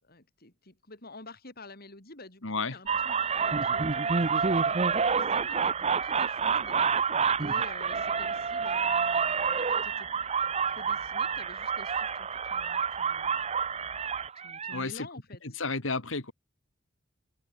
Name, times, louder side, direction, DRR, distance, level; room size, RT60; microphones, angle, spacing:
voice 1, 0.0-2.4 2.7-10.1 10.7-13.5 14.4-15.6, left 2 dB, 50° left, 7.3 m, -50 dB
voice 2, 2.4-2.8 14.7-15.1 15.6-16.3, left 3 dB, 90° left, 2.6 m, -31 dB
sound 1, 2.9-14.8, right 6 dB, 35° right, 0.8 m, -28 dB
open air
head